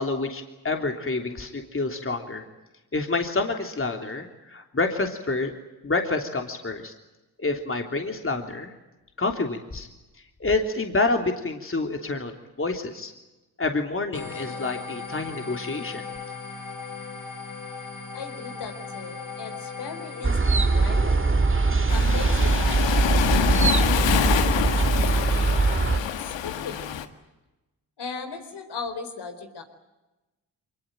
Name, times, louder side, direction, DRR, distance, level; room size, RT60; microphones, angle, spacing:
voice 1, 0.0-2.4 2.9-5.5 5.8-6.9 7.4-8.7 9.2-9.9 10.4-12.3 12.6-13.1 13.6-16.0, left 3 dB, 30° left, 4 dB, 3.3 m, -28 dB
sound 1, 14.1-23.5, left 4 dB, 50° left, 4.5 m, -38 dB
voice 2, 18.1-21.2 21.9-26.8 28.0-29.6, left 5 dB, 65° left, 7 dB, 4.3 m, -38 dB
sound 2, 20.2-26.0, right 3 dB, 30° right, 2.2 m, -21 dB
Waves surf, 21.9-27.0, left 10 dB, 80° left, 1.7 m, -26 dB
24.0 x 21.0 x 9.1 m, 1.1 s
supercardioid pair, 50°, 44 cm